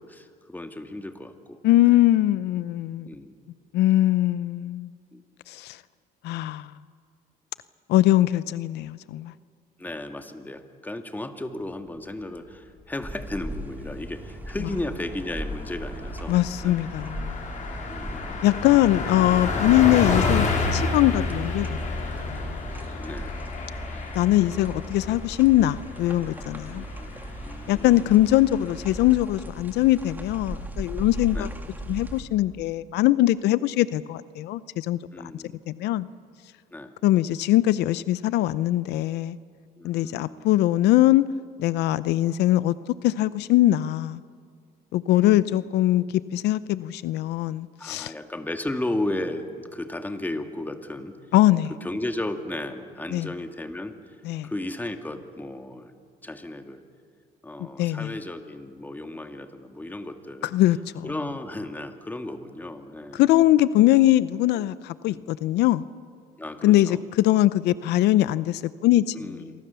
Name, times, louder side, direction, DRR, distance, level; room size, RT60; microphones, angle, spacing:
voice 1, 0.0-1.6 3.0-3.4 5.1-5.2 9.8-16.8 17.9-18.4 23.0-23.4 23.9-24.1 26.6-27.2 27.4-28.2 31.3-31.5 35.1-35.6 36.7-36.9 39.8-40.5 45.1-45.6 47.8-51.1 51.8-54.0 54.4-55.9 56.2-56.8 57.4-60.5 61.0-63.2 64.5-64.7 65.1-65.2 66.4-67.0 69.1-69.5, left 1 dB, 10° left, 6 dB, 1.9 m, -35 dB
voice 2, 1.6-3.1 3.7-4.9 5.5-5.8 6.2-6.7 7.9-9.3 16.3-17.4 18.4-21.8 22.3-22.6 24.1-26.8 27.7-31.5 31.9-35.0 35.7-36.1 37.0-39.4 39.8-41.2 41.6-42.7 43.0-44.2 44.9-46.0 46.3-48.1 51.3-51.7 53.1-53.3 54.2-54.5 57.8-58.1 60.5-61.1 63.1-65.8 66.6-69.4, left 15 dB, 80° left, 17 dB, 0.6 m, -21 dB
sound 1, 13.0-32.2, equal, 10° right, 2.6 m, -37 dB
Car passing by, 13.5-13.9 14.3-14.4 14.7-29.0, left 3 dB, 45° left, 4.9 m, -31 dB
28.0 x 23.5 x 6.9 m, 2.2 s
cardioid pair, 110°, 17 cm